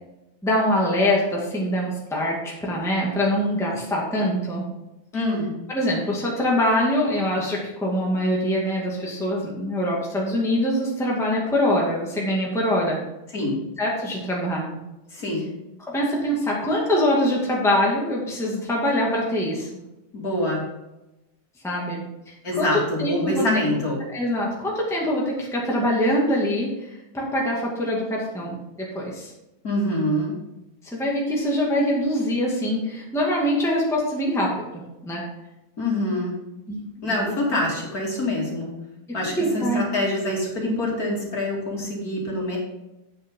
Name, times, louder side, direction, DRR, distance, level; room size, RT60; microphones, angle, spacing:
voice 1, 0.4-4.6 5.7-13.0 13.8-14.8 15.9-19.7 21.6-22.0 22.5-23.4 24.1-28.6 28.9-29.3 30.8-34.5 35.0-35.2 36.7-37.3 39.1-39.8, equal, ahead, -4 dB, 2.1 m, -24 dB
voice 2, 5.1-5.5 13.3-13.6 15.1-15.5 20.1-20.6 22.4-24.0 29.6-30.3 35.8-36.3 37.0-38.7 39.1-42.6, left 1 dB, 45° left, -3 dB, 3.2 m, -25 dB
9.5 x 9.1 x 3.8 m, 0.97 s
omnidirectional pair, 2.2 m